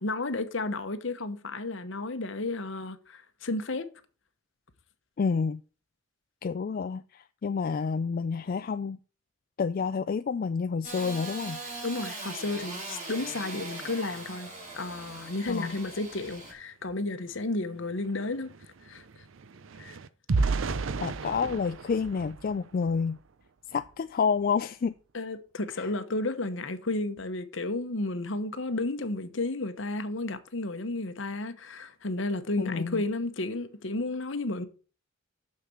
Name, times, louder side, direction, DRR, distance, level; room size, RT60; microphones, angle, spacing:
voice 1, 0.0-3.9 11.8-18.5 18.8-19.2 19.8-20.0 25.1-34.7, left 2 dB, 65° left, 1.0 m, -32 dB
voice 2, 5.2-5.6 6.4-9.0 9.6-11.6 15.5-15.8 21.0-23.2 23.7-24.9 25.8-25.9 32.6-33.0, left 5 dB, 45° left, 0.3 m, -29 dB
Engine starting / Sawing, 10.8-16.5, right 2 dB, 35° right, 4.0 m, -40 dB
sound 1, 17.3-17.4 17.7-23.2 23.7-23.9 24.3-24.5, right 4 dB, 70° right, 0.6 m, -33 dB
6.6 x 6.6 x 7.0 m
head